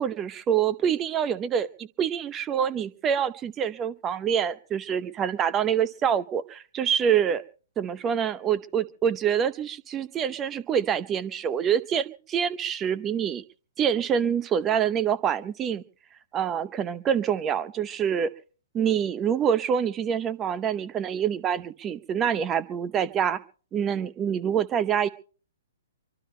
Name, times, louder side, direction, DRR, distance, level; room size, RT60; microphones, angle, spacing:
voice 1, 0.0-7.4 7.8-13.4 13.8-15.8 16.3-18.3 18.7-23.4 23.7-25.1, right 8 dB, 20° right, 17 dB, 0.8 m, -26 dB
25.5 x 24.0 x 2.2 m, 0.40 s
figure-of-eight pair, 120°, 0 cm